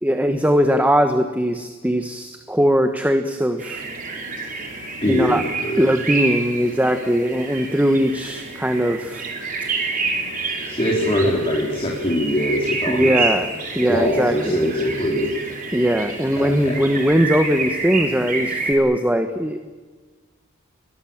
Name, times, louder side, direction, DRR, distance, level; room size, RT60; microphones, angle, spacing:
voice 1, 0.0-3.8 5.1-5.4 5.8-9.2 12.9-14.7 15.7-19.6, equal, 5° right, 6 dB, 1.3 m, -20 dB
sound 1, 3.6-18.7, right 3 dB, 40° right, 4.7 m, -28 dB
voice 2, 5.0-5.8 10.7-13.1 13.9-15.4 16.4-16.8, equal, 25° left, -2 dB, 4.4 m, -22 dB
29.5 x 22.0 x 7.4 m, 1.4 s
head